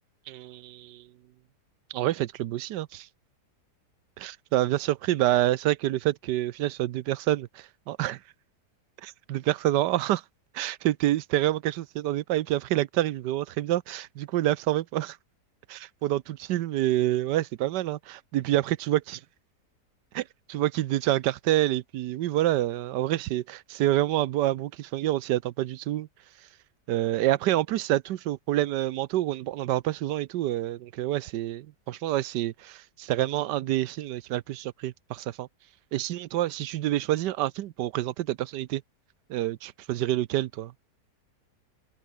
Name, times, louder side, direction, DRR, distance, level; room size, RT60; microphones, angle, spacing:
voice 1, 0.3-1.1 1.9-3.1 4.2-8.2 9.0-10.2 10.5-15.2 15.7-19.2 20.1-26.1 26.9-35.5 35.9-38.8 39.3-40.7, right 14 dB, 90° right, 1.3 m, -27 dB
omnidirectional pair, 1.8 m